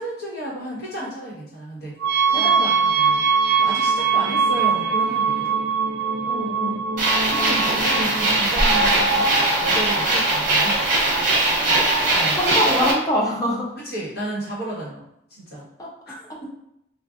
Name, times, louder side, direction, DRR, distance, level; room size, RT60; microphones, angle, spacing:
voice 1, 0.0-2.0 2.3-3.2 3.6-5.5 7.3-10.8 11.7-12.4 13.8-15.0 15.3-15.7 16.1-16.5, right 1 dB, 65° left, -6 dB, 1.3 m, -32 dB
sound 1, 2.0-8.4, right 6 dB, 65° right, 0.3 m, -21 dB
voice 2, 2.3-2.7 6.2-6.8 12.4-13.8 15.8-15.9, equal, 20° left, -3 dB, 0.6 m, -24 dB
sound 2, 7.0-12.9, right 2 dB, 45° right, 0.8 m, -20 dB
3.6 x 2.4 x 2.5 m, 0.78 s
head